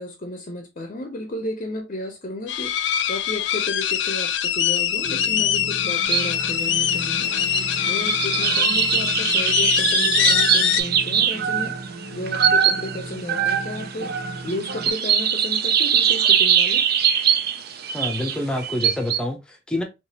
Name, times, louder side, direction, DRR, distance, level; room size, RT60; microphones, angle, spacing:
voice 1, 0.0-7.3 7.9-14.1 14.4-16.9, left 1 dB, 45° left, 0.6 m, -33 dB
sound 1, 2.5-10.8, left 10 dB, 80° left, 0.4 m, -23 dB
sound 2, 5.0-14.9, right 2 dB, 80° right, 1.4 m, -37 dB
sound 3, 6.0-6.5 6.8-19.2, right 8 dB, 60° right, 0.5 m, -22 dB
voice 2, 17.9-19.8, left 1 dB, 5° left, 0.7 m, -27 dB
3.4 x 3.0 x 2.8 m
head